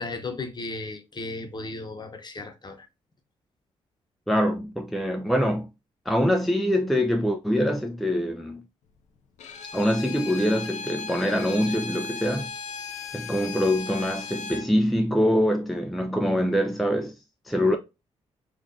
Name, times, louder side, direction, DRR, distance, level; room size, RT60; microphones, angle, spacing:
voice 1, 0.0-2.9, left 3 dB, 35° left, 0.9 m, -35 dB
voice 2, 4.3-5.7 6.1-8.6 9.7-12.5 13.1-17.1 17.5-17.8, equal, ahead, 0.4 m, -24 dB
Bowed string instrument, 9.4-14.7, left 5 dB, 75° left, 0.5 m, -36 dB
3.7 x 2.5 x 2.6 m
supercardioid pair, 60°, 12 cm